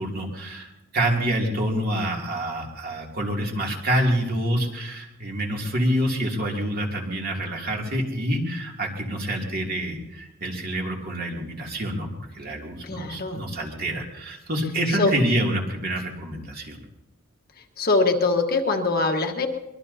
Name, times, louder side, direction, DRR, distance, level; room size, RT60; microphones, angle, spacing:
voice 1, 0.0-12.1 12.3-16.8, right 1 dB, 45° right, -1 dB, 2.7 m, -27 dB
voice 2, 12.8-13.4 15.0-15.1 17.8-19.5, left 3 dB, 45° left, 3 dB, 1.4 m, -22 dB
23.5 x 22.0 x 2.8 m, 0.95 s
head